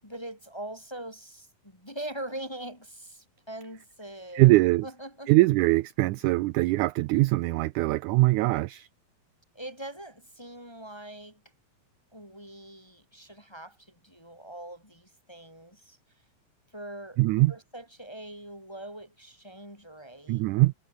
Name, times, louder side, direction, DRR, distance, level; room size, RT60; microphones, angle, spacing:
voice 1, 0.0-4.6 4.8-5.3 9.5-11.4 12.1-16.0 16.7-17.2 17.5-20.4, right 1 dB, 10° left, 2.4 m, -42 dB
voice 2, 4.3-4.8 5.3-8.9 17.2-17.5 20.3-20.7, right 20 dB, 80° right, 1.8 m, -22 dB
omnidirectional pair, 4.0 m